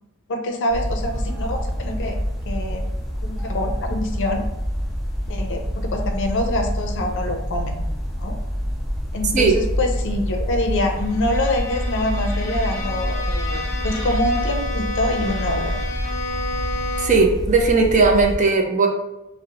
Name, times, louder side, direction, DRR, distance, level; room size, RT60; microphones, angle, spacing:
voice 1, 0.3-2.2 2.4-2.8 3.2-4.4 5.3-7.9 8.2-8.4 9.1-15.8, left 1 dB, 60° left, 4 dB, 0.5 m, -25 dB
sound 1, 0.7-18.4, equal, ahead, 1.4 m, -27 dB
Bowed string instrument, 10.9-17.4, left 2 dB, 15° left, 0.7 m, -31 dB
voice 2, 17.0-18.9, right 4 dB, 35° right, 1 dB, 0.4 m, -17 dB
3.8 x 2.0 x 2.8 m, 0.96 s
head